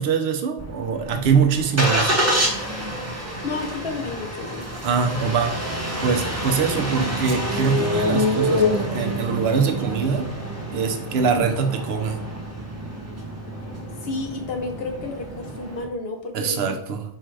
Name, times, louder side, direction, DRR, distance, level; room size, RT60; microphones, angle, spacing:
voice 1, 0.0-2.2 4.8-5.6 6.0-10.3 10.7-12.2 16.3-17.0, right 6 dB, 85° right, 5 dB, 0.9 m, -23 dB
Engine starting, 0.6-15.8, equal, 15° right, 0.8 m, -27 dB
voice 2, 3.4-4.7 14.0-16.8, left 3 dB, 75° left, 3 dB, 1.0 m, -31 dB
4.4 x 2.4 x 4.6 m, 0.70 s
omnidirectional pair, 1.0 m